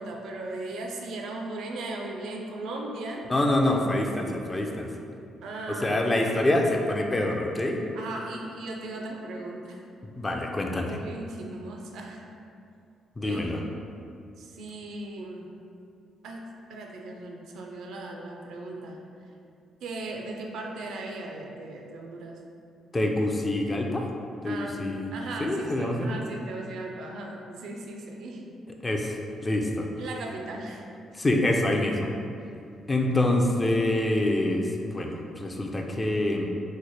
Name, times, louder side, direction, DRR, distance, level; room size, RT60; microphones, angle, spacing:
voice 1, 0.0-3.3 5.4-6.2 7.9-9.8 10.9-12.3 13.2-13.5 14.4-15.5 16.2-19.0 19.8-22.4 24.4-24.8 25.1-28.5 30.0-30.8, right 2 dB, 80° right, 1 dB, 0.4 m, -37 dB
voice 2, 3.3-4.9 5.7-7.8 10.2-11.0 13.2-13.6 22.9-24.0 24.4-25.1 25.4-26.1 28.8-29.2 29.4-29.9 31.1-32.1 32.9-36.4, left 1 dB, 25° left, 1 dB, 0.4 m, -26 dB
3.1 x 2.1 x 4.0 m, 2.5 s
cardioid pair, 90°, 0 cm